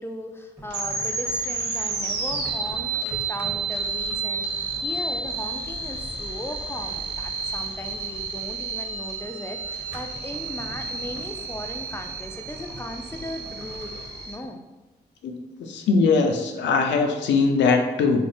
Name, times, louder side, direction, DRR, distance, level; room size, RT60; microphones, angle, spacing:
voice 1, 0.0-13.9 14.3-14.6, left 1 dB, 15° left, 4 dB, 0.3 m, -37 dB
sound 1, 0.6-14.5, right 1 dB, 10° right, 0.8 m, -44 dB
sound 2, 0.7-14.4, right 4 dB, 65° right, 0.5 m, -31 dB
voice 2, 15.6-18.3, left 4 dB, 80° left, 4 dB, 0.4 m, -21 dB
3.3 x 2.0 x 2.6 m, 1.1 s
cardioid pair, 60°, 18 cm